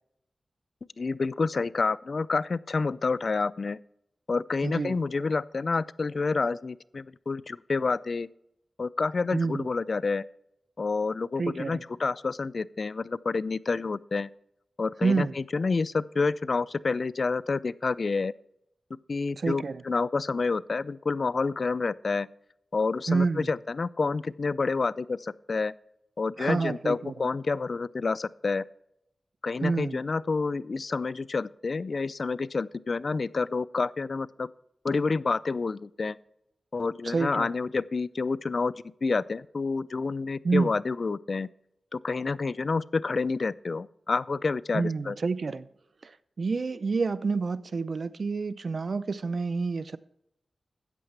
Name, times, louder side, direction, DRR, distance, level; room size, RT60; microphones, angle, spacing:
voice 1, 1.0-3.8 4.3-8.3 8.8-10.2 10.8-14.3 14.8-18.3 19.1-22.3 22.7-25.7 26.2-28.6 29.4-34.5 34.8-36.2 36.7-38.7 39.0-41.5 41.9-45.2, left 4 dB, 60° left, 0.3 m, -28 dB
voice 2, 4.6-5.0 9.3-9.7 11.4-11.8 15.0-15.3 19.4-19.8 23.1-23.5 26.4-27.1 29.6-30.0 37.0-37.5 40.4-40.7 44.7-45.7 46.0-46.1 46.4-50.0, right 4 dB, 65° right, 0.5 m, -28 dB
13.5 x 8.8 x 3.3 m
cardioid pair, 60°, 0 cm